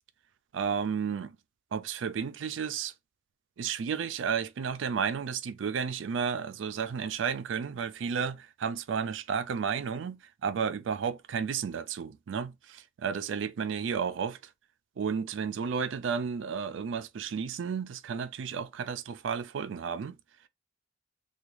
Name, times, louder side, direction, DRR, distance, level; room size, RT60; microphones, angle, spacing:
voice 1, 0.5-1.4 1.7-2.9 3.6-14.4 15.0-20.2, right 6 dB, 70° right, 0.4 m, -32 dB
3.5 x 2.3 x 3.1 m
head